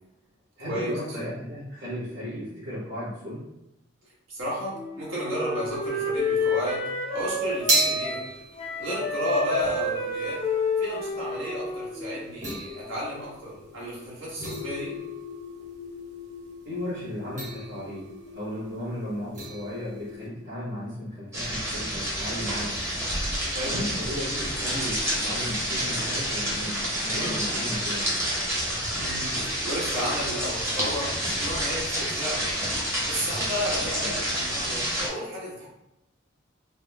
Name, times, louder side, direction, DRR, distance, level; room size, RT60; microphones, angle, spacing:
voice 1, 0.6-3.4 16.6-22.8 23.6-28.2 34.0-34.1, equal, 55° right, -10 dB, 1.3 m, -35 dB
voice 2, 4.3-8.3 8.8-10.4 10.8-14.9 23.5-23.8 29.0-29.3 29.6-32.5 33.0-35.7, equal, 80° right, -6 dB, 1.4 m, -33 dB
Wind instrument woodwind instrument, 4.7-8.3 8.6-12.4, left 2 dB, 25° left, 0.5 m, -29 dB
sound 1, 7.3-20.3, right 2 dB, 35° right, 1.1 m, -34 dB
sound 2, 21.3-35.1, equal, 15° right, 0.8 m, -29 dB
3.4 x 2.1 x 3.4 m, 0.89 s
head